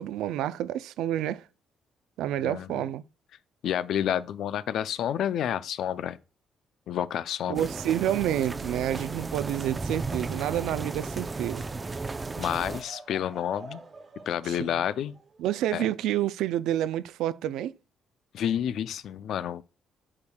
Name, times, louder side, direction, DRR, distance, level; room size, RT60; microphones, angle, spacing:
voice 1, 0.0-1.4 2.2-3.0 7.5-11.7 14.4-14.8 15.4-17.7, right 12 dB, 90° right, 0.4 m, -29 dB
voice 2, 3.6-6.2 6.9-7.6 12.4-13.8 14.3-15.1 15.7-15.8 18.3-19.6, left 10 dB, 75° left, 0.4 m, -29 dB
sound 1, 7.5-12.8, right 3 dB, 25° right, 0.4 m, -34 dB
Laughter / Crowd, 9.7-16.1, right 3 dB, 40° right, 1.3 m, -49 dB
8.5 x 6.3 x 2.3 m
cardioid pair, 90°, 0 cm